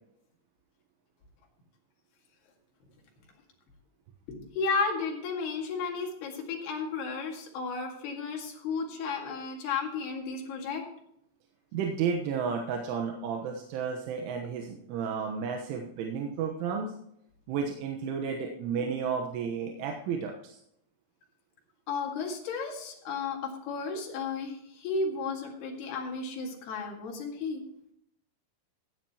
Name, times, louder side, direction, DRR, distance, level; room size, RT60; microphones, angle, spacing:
voice 1, 4.3-10.8 18.8-18.9 21.9-27.6, left 4 dB, 60° left, 0 dB, 3.9 m, -33 dB
voice 2, 11.7-16.9 17.5-20.6, right 6 dB, 85° right, 2 dB, 3.6 m, -32 dB
15.5 x 10.5 x 3.0 m, 0.74 s
omnidirectional pair, 5.6 m